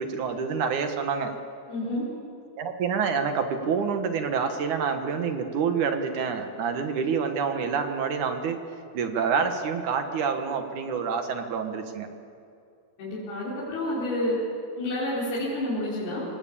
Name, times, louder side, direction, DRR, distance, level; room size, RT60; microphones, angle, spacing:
voice 1, 0.0-1.3 2.6-8.6 8.9-12.1, right 6 dB, 60° right, 7 dB, 2.4 m, -27 dB
voice 2, 1.7-2.0 13.0-14.4 14.8-16.2, left 1 dB, 75° left, -8 dB, 6.5 m, -29 dB
27.0 x 19.0 x 8.7 m, 2.5 s
omnidirectional pair, 4.6 m